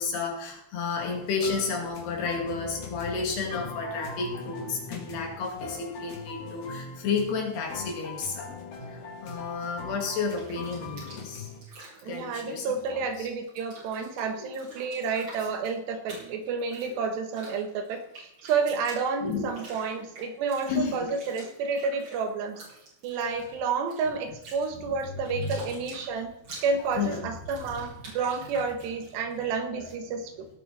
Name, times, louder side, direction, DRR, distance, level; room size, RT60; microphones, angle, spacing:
voice 1, 0.0-8.5 8.9-11.5 12.0-13.3 14.2-14.5 19.2-19.5 19.9-20.0 20.7-21.1 24.8-25.6 27.0-27.3 29.7-29.8, left 4 dB, 75° left, 1 dB, 4.7 m, -32 dB
sound 1, 1.0-11.6, left 4 dB, 45° left, 2.7 m, -41 dB
Piano, 4.2-8.7, left 2 dB, 70° right, 4.3 m, -52 dB
Bathtub (filling or washing), 10.1-13.2 13.4-29.4, right 2 dB, 45° right, 7.3 m, -48 dB
voice 2, 12.0-22.6 23.0-26.3 26.6-30.5, right 5 dB, 90° right, 6 dB, 3.7 m, -30 dB
18.5 x 8.8 x 4.3 m, 0.82 s
omnidirectional pair, 4.7 m